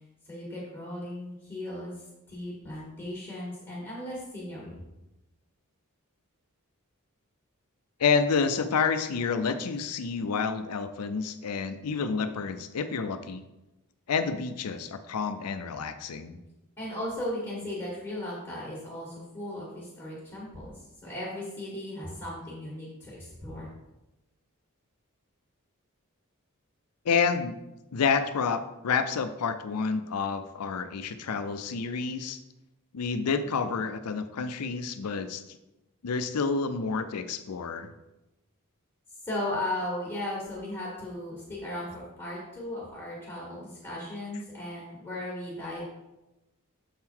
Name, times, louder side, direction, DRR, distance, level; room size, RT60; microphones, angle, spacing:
voice 1, 0.3-1.9 2.3-4.8 16.8-23.7 39.3-45.8, left 1 dB, 10° left, -6 dB, 1.6 m, -36 dB
voice 2, 8.0-13.4 14.1-16.4 27.0-27.6 27.9-32.4 32.9-35.4 36.0-37.9, left 5 dB, 90° left, 10 dB, 0.5 m, -29 dB
7.2 x 3.7 x 4.5 m, 0.98 s
head